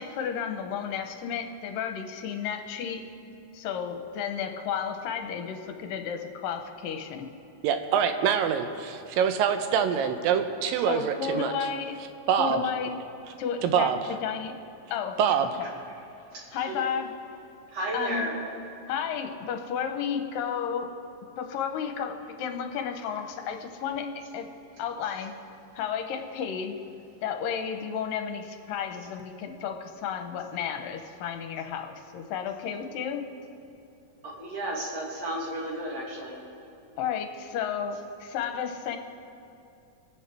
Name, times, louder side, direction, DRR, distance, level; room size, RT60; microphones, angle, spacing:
voice 1, 0.0-3.0 3.5-7.3 10.9-12.0 12.4-13.0 13.4-14.5 14.9-15.2 15.6-15.7 16.5-17.1 17.9-18.3 18.9-20.9 21.4-24.5 24.8-25.4 25.7-26.8 27.2-33.2 37.0-39.0, left 7 dB, 75° left, 5 dB, 2.5 m, -32 dB
voice 2, 7.6-11.5 12.3-12.6 13.6-14.0 15.2-15.5, right 8 dB, 80° right, 8 dB, 2.4 m, -25 dB
voice 3, 16.3-16.8 17.7-18.4 34.2-36.4, right 1 dB, 50° right, -3 dB, 2.9 m, -33 dB
27.0 x 9.6 x 3.4 m, 2.7 s
omnidirectional pair, 4.2 m